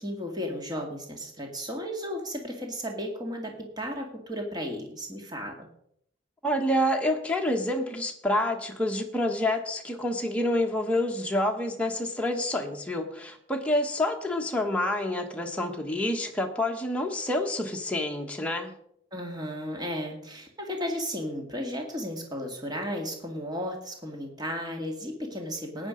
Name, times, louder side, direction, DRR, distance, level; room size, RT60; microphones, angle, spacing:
voice 1, 0.0-5.7 19.1-25.9, equal, 20° right, 2 dB, 2.0 m, -34 dB
voice 2, 6.4-18.7, left 1 dB, 5° left, 2 dB, 1.4 m, -28 dB
14.5 x 9.8 x 5.2 m, 0.73 s
head